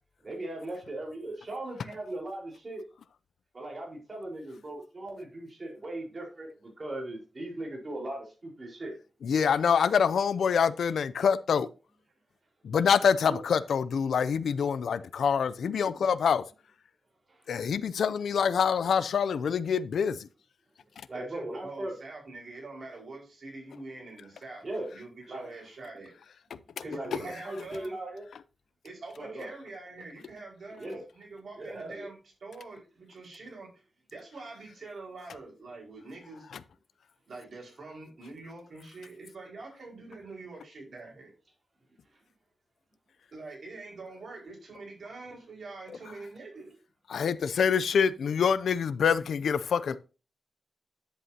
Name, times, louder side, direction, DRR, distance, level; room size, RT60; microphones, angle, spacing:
voice 1, 0.2-2.8 3.5-8.9 13.2-13.4 21.1-21.9 24.6-24.9 25.3-25.5 26.8-28.2 29.2-29.5 30.8-31.0 31.6-32.1, right 1 dB, 35° right, 4.5 m, -38 dB
voice 2, 9.2-11.7 12.6-16.4 17.5-20.3 47.1-50.0, left 7 dB, 90° left, 0.5 m, -26 dB
voice 3, 15.6-16.0 21.1-26.1 26.8-27.9 28.8-33.7 34.1-36.5 37.3-41.3 43.3-46.7, right 3 dB, 60° right, 5.1 m, -45 dB
9.9 x 8.1 x 2.8 m
wide cardioid pair, 110°, 0 cm